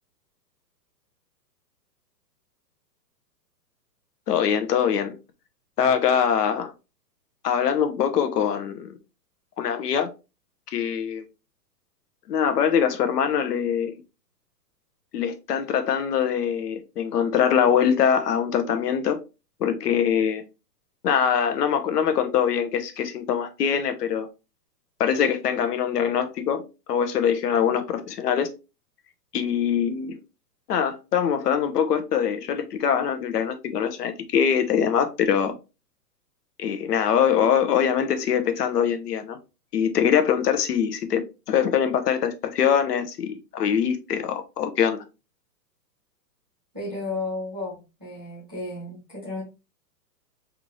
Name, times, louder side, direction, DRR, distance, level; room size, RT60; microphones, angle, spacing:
voice 1, 4.3-5.1 5.8-6.7 7.4-8.9 9.6-10.1 10.7-11.2 12.3-14.0 15.1-19.2 19.6-20.4 21.0-24.3 25.0-26.6 26.9-28.5 29.3-30.1 30.7-35.5 36.6-39.4 39.7-45.0, left 8 dB, 70° left, 0.8 m, -23 dB
voice 2, 46.7-49.4, left 2 dB, 15° right, 0.4 m, -33 dB
3.5 x 2.5 x 3.0 m
hypercardioid pair, 170°, 50 cm